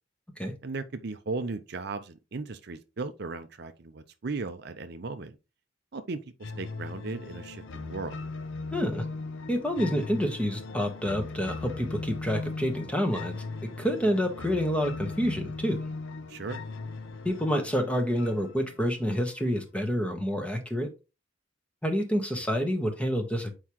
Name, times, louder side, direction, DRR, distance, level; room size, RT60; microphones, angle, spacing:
voice 1, 0.6-5.4 5.9-8.2 16.3-16.6, right 3 dB, 50° right, 0.6 m, -36 dB
sound 1, 6.4-19.4, left 3 dB, 65° left, 0.7 m, -39 dB
voice 2, 8.7-9.0 9.5-13.4 13.8-15.8 17.2-20.9 21.8-23.5, equal, 5° left, 1.2 m, -28 dB
7.7 x 4.8 x 2.9 m
head